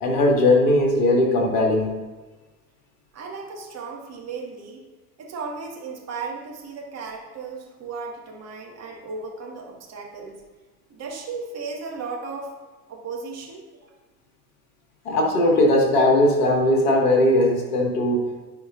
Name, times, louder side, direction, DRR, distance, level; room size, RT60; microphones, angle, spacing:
voice 1, 0.0-1.9 15.1-18.5, left 1 dB, 60° left, 1 dB, 2.0 m, -19 dB
voice 2, 3.1-4.8 5.2-10.4 10.9-12.5 12.9-13.9, right 4 dB, 35° right, -1 dB, 1.9 m, -35 dB
15.0 x 5.1 x 2.6 m, 1.2 s
figure-of-eight pair, 65°, 46 cm